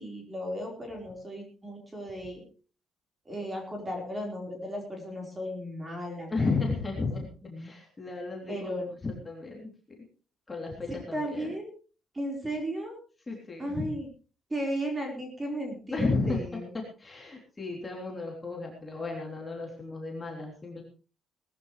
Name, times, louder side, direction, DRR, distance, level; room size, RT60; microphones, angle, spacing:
voice 1, 0.0-2.4 3.2-6.6 7.5-7.7 8.5-8.9 10.9-11.7 12.1-13.0 13.6-14.1 14.5-16.7, equal, 15° right, 1 dB, 4.5 m, -35 dB
voice 2, 6.3-8.8 9.0-9.7 10.5-11.5 13.3-13.9 15.9-16.4 17.0-20.8, left 3 dB, 15° left, -1 dB, 3.2 m, -33 dB
19.0 x 14.5 x 3.3 m, 0.36 s
cardioid pair, 165°, 0 cm